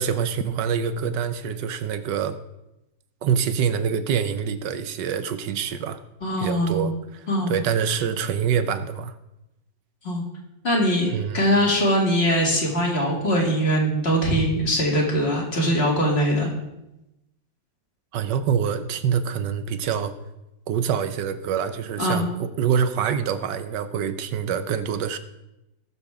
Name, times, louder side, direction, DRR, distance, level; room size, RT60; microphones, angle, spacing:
voice 1, 0.0-2.4 3.2-6.0 6.4-9.1 11.1-11.4 18.1-20.1 20.7-22.3 22.6-25.2, right 7 dB, 75° right, 11 dB, 1.4 m, -25 dB
voice 2, 6.2-6.9 7.3-7.6 10.0-10.2 10.6-11.1 11.3-16.5 22.0-22.3, equal, 35° left, -1 dB, 2.5 m, -22 dB
19.5 x 6.9 x 3.6 m, 0.93 s
omnidirectional pair, 1.9 m